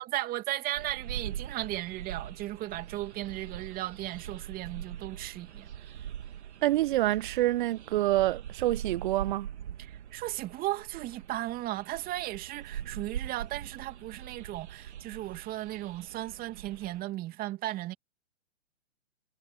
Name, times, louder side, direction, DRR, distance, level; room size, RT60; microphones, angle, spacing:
voice 1, 0.0-5.7 9.8-17.9, right 15 dB, 25° right, 2.6 m, -36 dB
sound 1, 0.7-17.0, right 10 dB, 60° right, 1.8 m, -42 dB
voice 2, 6.6-9.5, right 15 dB, 40° right, 1.0 m, -27 dB
hypercardioid pair, 130°, 38 cm